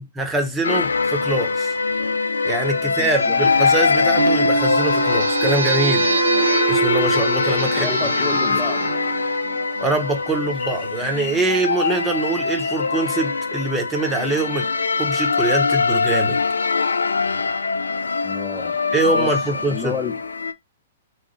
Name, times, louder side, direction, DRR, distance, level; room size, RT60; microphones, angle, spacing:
voice 1, 0.0-1.7 2.4-6.1 6.7-8.1 8.5-8.6 9.8-14.7 15.0-16.4 18.9-19.9, right 2 dB, 15° right, 0.9 m, -24 dB
sound 1, 0.6-20.5, left 4 dB, 85° left, 0.3 m, -22 dB
voice 2, 2.8-3.4 7.7-9.0 18.2-18.8 19.0-20.2, left 5 dB, 10° left, 0.4 m, -31 dB
sound 2, 4.2-10.2, right 6 dB, 75° right, 0.5 m, -24 dB
sound 3, 10.6-12.9, left 6 dB, 40° left, 0.9 m, -36 dB
3.2 x 2.2 x 4.1 m
hypercardioid pair, 120°, 0 cm